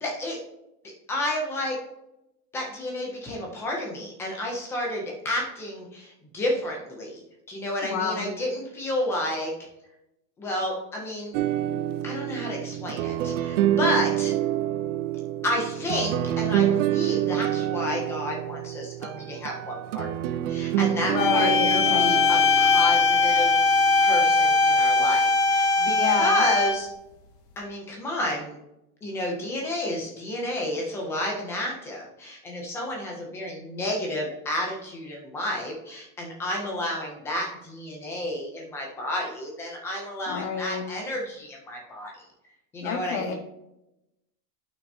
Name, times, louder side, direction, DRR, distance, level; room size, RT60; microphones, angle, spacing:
voice 1, 0.0-0.4 1.1-1.8 2.5-7.2 7.5-9.5 10.4-11.3 12.0-14.3 15.4-20.1 20.5-26.9 27.6-28.5 29.0-42.1 42.7-43.3, left 1 dB, 5° left, -1 dB, 0.3 m, -31 dB
voice 2, 7.8-8.2 21.0-22.1 25.9-26.4 40.3-40.8 42.8-43.4, left 6 dB, 65° left, 6 dB, 1.6 m, -29 dB
sound 1, 11.3-23.8, right 12 dB, 50° right, 0.6 m, -27 dB
sound 2, 21.2-26.9, left 3 dB, 90° left, 2.5 m, -20 dB
11.5 x 6.0 x 2.7 m, 0.89 s
supercardioid pair, 165°, 47 cm